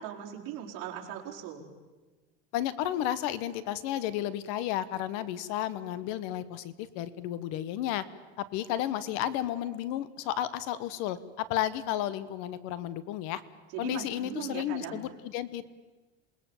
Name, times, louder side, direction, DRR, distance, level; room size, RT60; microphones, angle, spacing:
voice 1, 0.0-1.7 13.7-15.0, right 9 dB, 60° right, -2 dB, 4.9 m, -39 dB
voice 2, 2.5-8.0 8.4-13.4 13.8-15.7, left 12 dB, 65° left, 16 dB, 1.3 m, -32 dB
27.5 x 20.0 x 7.3 m, 1.3 s
cardioid pair, 165°, 30 cm